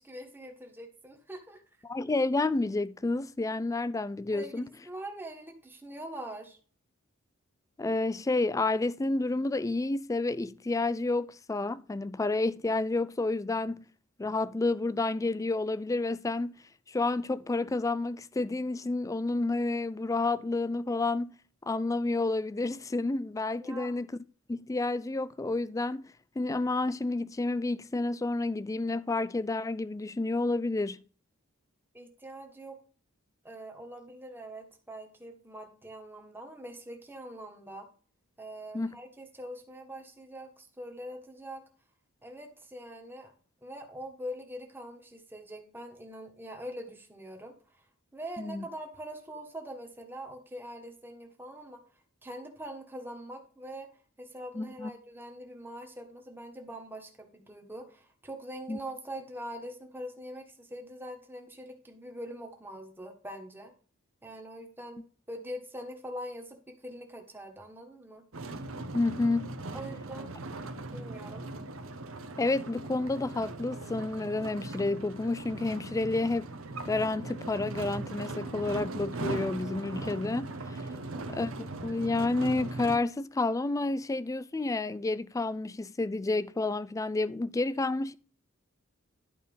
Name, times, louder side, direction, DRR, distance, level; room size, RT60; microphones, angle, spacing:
voice 1, 0.0-1.6 4.3-6.6 23.6-23.9 31.9-32.8 33.4-37.9 38.4-41.6 42.2-43.3 43.6-47.8 48.1-51.8 52.2-53.9 54.2-63.7 64.2-68.2 69.7-70.4 70.9-71.5, equal, 10° right, 1.5 m, -43 dB
voice 2, 1.8-4.6 7.8-13.8 14.2-16.6 16.9-21.3 21.6-24.1 24.5-31.0 38.7-38.9 48.4-48.7 54.5-54.9 58.7-58.8 68.9-69.5 72.4-76.5 76.8-80.8 81.3-88.1, left 2 dB, 15° left, 0.3 m, -30 dB
sound 1, 68.3-83.0, right 2 dB, 70° right, 0.9 m, -39 dB
11.5 x 4.2 x 5.5 m
head